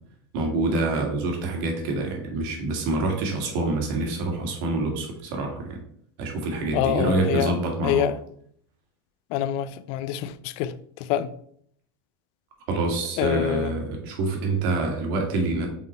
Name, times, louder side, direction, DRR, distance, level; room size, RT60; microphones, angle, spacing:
voice 1, 0.3-5.8 6.2-8.1 12.7-15.7, right 2 dB, 65° right, 1.8 m, -26 dB
voice 2, 6.7-7.5 7.8-8.1 9.3-10.7 11.1-11.3 13.2-13.7, left 11 dB, 55° left, 0.4 m, -25 dB
5.8 x 3.8 x 4.3 m
supercardioid pair, 150°, 12 cm